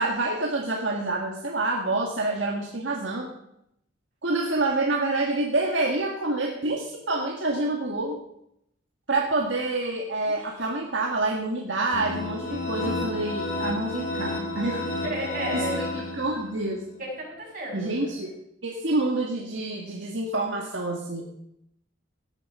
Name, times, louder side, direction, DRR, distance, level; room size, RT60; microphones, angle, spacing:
voice 1, 0.0-3.3 4.2-8.2 9.1-14.9 15.5-15.6 15.9-16.9 17.7-18.3 18.6-21.2, right 2 dB, 70° right, 0 dB, 1.8 m, -27 dB
sound 1, 11.9-16.7, left 2 dB, 40° left, 3.3 m, -31 dB
voice 2, 15.0-16.0 17.0-18.0, right 1 dB, 45° right, -2 dB, 6.8 m, -33 dB
17.0 x 9.9 x 5.6 m, 0.77 s
head